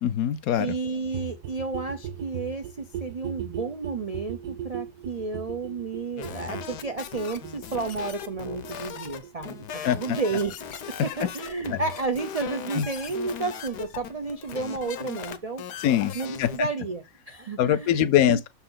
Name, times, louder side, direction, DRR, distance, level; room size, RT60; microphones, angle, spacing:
voice 1, 0.0-0.7 9.8-10.2 11.7-11.8 12.8-12.9 15.8-16.7 17.6-18.5, left 10 dB, 70° left, 1.0 m, -23 dB
voice 2, 0.6-9.6 9.9-10.6 10.9-15.6 16.1-18.4, right 4 dB, 70° right, 0.3 m, -32 dB
sound 1, 1.0-12.6 12.8-12.9 13.1-13.2 13.4-13.5 13.7-13.8 14.0-14.1 14.3-14.4, right 9 dB, 85° right, 1.3 m, -39 dB
sound 2, 6.2-16.6, left 8 dB, 85° left, 1.4 m, -38 dB
6.6 x 4.3 x 3.8 m
omnidirectional pair, 1.7 m